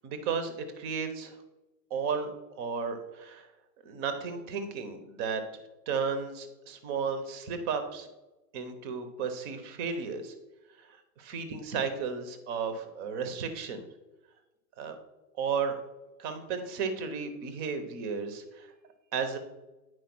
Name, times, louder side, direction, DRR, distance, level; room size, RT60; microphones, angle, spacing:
voice 1, 0.0-1.4 1.9-2.3 2.6-3.5 3.8-5.4 5.9-8.1 8.5-10.3 10.8-13.9 14.8-15.0 15.4-15.8 16.2-18.7 19.1-19.4, right 5 dB, 20° right, 8 dB, 0.7 m, -34 dB
9.4 x 4.6 x 6.0 m, 1.1 s
supercardioid pair, 160°, 49 cm